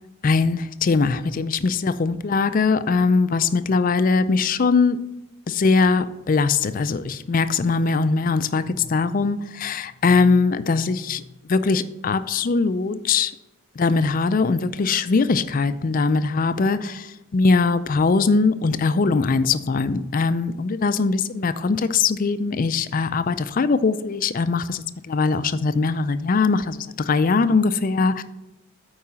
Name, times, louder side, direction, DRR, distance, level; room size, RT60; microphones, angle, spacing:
voice 1, 0.2-5.0 5.5-11.2 11.5-13.3 13.8-28.2, left 4 dB, 40° left, 13 dB, 0.4 m, -21 dB
8.6 x 4.7 x 5.6 m, 0.97 s
head